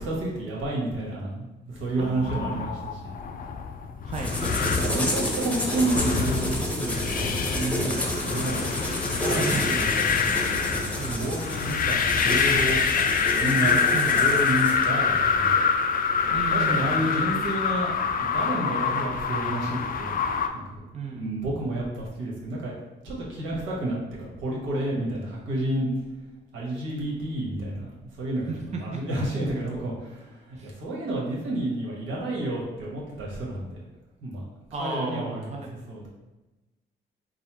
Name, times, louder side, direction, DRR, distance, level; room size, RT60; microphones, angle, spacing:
voice 1, 0.0-3.2 4.7-8.7 9.2-12.8 13.3-13.8 14.1-15.6 16.2-20.1 20.5-20.6 21.2-22.7 23.0-25.9 26.5-27.9 28.2-30.3 30.6-33.8 34.2-34.4 34.8-35.5 35.9-36.1, right 1 dB, 80° right, -4 dB, 1.5 m, -30 dB
sound 1, 2.0-20.5, left 6 dB, 45° left, 0.4 m, -26 dB
voice 2, 2.0-2.7 4.0-4.6 9.3-9.9 11.0-11.4 13.6-14.2 16.3-17.1 18.9-19.2 20.9-21.4 28.5-29.0 30.6-30.7 34.7-35.9, right 4 dB, 35° right, 0 dB, 0.6 m, -34 dB
sound 2, 4.1-14.9, equal, 5° left, 0.9 m, -30 dB
4.1 x 2.2 x 4.3 m, 1.1 s
cardioid pair, 90°, 20 cm